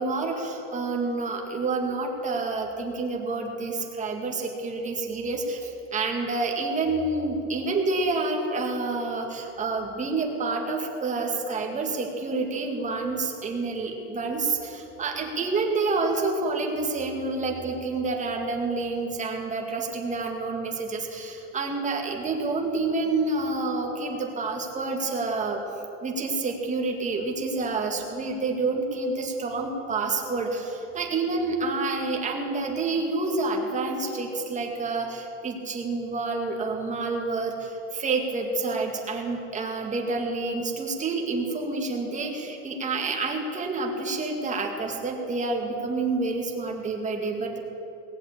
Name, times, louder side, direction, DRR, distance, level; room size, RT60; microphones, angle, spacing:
voice 1, 0.0-25.6 26.0-47.6, right 3 dB, 20° right, 1 dB, 2.1 m, -28 dB
19.0 x 8.0 x 8.6 m, 3.0 s
supercardioid pair, 140°, 32 cm